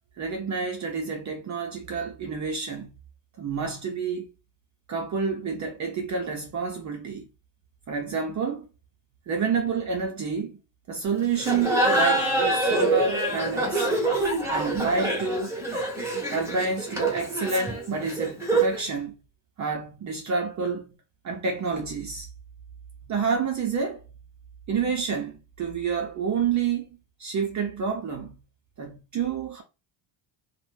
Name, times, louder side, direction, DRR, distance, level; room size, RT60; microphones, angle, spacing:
voice 1, 0.2-2.9 3.4-4.3 4.9-7.3 7.9-8.7 9.3-10.6 10.9-13.9 14.4-15.6 16.3-19.1 19.6-20.9 21.2-22.3 23.1-24.0 24.7-26.9 27.2-28.4 28.8-29.6, right 5 dB, 40° right, 0.5 m, -29 dB
Laughter, 11.4-18.8, right 2 dB, 5° right, 0.8 m, -25 dB
2.6 x 2.1 x 3.1 m
cardioid pair, 140°, 49 cm